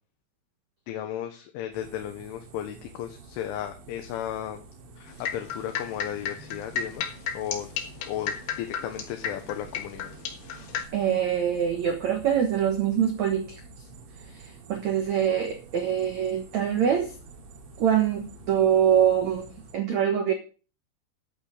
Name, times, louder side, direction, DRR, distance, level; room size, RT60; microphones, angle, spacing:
voice 1, 0.9-4.7 5.0-7.1 7.3-7.7 8.1-10.1, left 11 dB, 90° left, 5 dB, 3.6 m, -35 dB
sound 1, 1.7-19.8, right 3 dB, 85° right, 4.7 m, -48 dB
sound 2, 5.1-10.8, left 7 dB, 65° left, 2.8 m, -32 dB
voice 2, 10.9-13.6 14.3-17.1 17.8-20.3, right 9 dB, 70° right, 4 dB, 1.7 m, -24 dB
11.5 x 8.4 x 5.0 m, 0.36 s
omnidirectional pair, 5.4 m